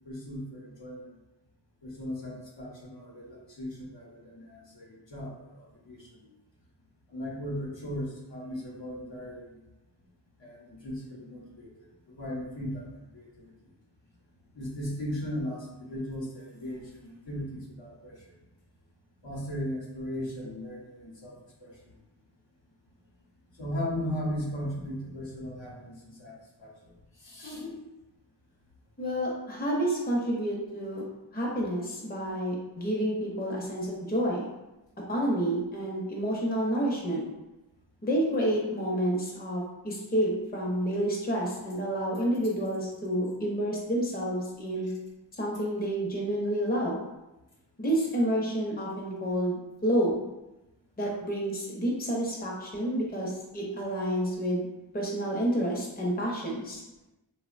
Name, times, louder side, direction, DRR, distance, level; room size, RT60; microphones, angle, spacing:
voice 1, 0.0-1.0 1.8-6.3 7.1-9.5 10.4-11.7 12.1-12.8 13.1-13.5 14.5-18.1 19.2-21.3 21.6-21.7 23.6-26.7 27.2-27.8, equal, 70° left, -3 dB, 0.7 m, -37 dB
voice 2, 29.0-31.0 31.3-34.5 35.1-37.2 38.0-44.9 45.4-47.0 47.8-50.2 51.0-54.7 54.9-56.8, right 1 dB, 20° left, -3 dB, 0.6 m, -29 dB
2.8 x 2.1 x 2.4 m, 0.99 s
wide cardioid pair, 40°, 46 cm